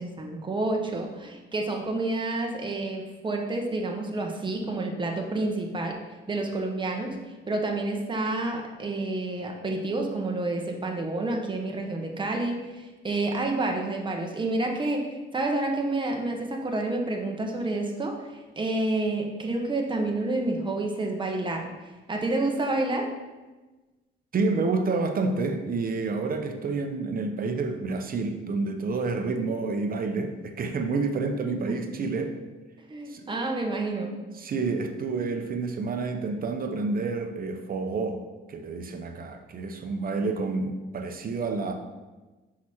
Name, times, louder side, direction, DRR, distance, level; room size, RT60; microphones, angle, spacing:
voice 1, 0.0-6.0 6.3-7.2 7.5-21.6 22.1-23.0 31.7-31.8 32.9-34.2 40.2-40.3, right 2 dB, 25° right, 2 dB, 1.1 m, -29 dB
voice 2, 24.3-32.4 33.1-33.3 34.4-38.2 38.5-41.7, right 3 dB, 45° right, 6 dB, 0.8 m, -29 dB
5.9 x 4.9 x 4.4 m, 1.2 s
cardioid pair, 90°, 20 cm